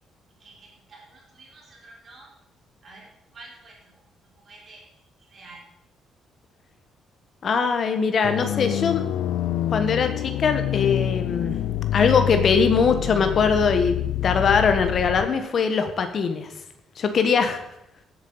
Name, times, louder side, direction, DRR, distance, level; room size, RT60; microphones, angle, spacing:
voice 1, 0.4-2.3 2.8-4.8 5.2-5.6, right 2 dB, 30° right, -1 dB, 4.3 m, -49 dB
voice 2, 7.4-9.0 9.7-11.6 11.9-14.0 14.2-16.5 17.0-17.6, left 5 dB, 35° left, 7 dB, 1.4 m, -21 dB
sound 1, 8.2-15.3, left 13 dB, 80° left, 0.4 m, -27 dB
15.5 x 7.9 x 5.6 m, 0.83 s
cardioid pair, 175°, 0 cm